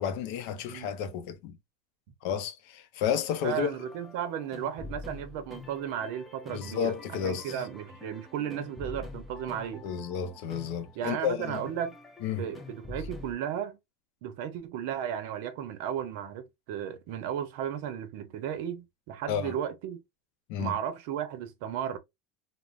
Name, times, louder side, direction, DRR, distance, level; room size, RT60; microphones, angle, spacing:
voice 1, 0.0-1.6 2.2-3.7 6.5-7.6 9.8-11.6 12.2-12.4 19.3-19.5 20.5-20.7, left 8 dB, 60° left, 0.5 m, -31 dB
sound 1, 3.4-13.3, left 3 dB, 10° left, 0.6 m, -45 dB
voice 2, 3.4-9.8 10.9-12.0 12.4-13.8 14.2-20.0 20.6-22.0, right 9 dB, 65° right, 0.6 m, -34 dB
2.5 x 2.0 x 3.1 m
supercardioid pair, 140°, 0 cm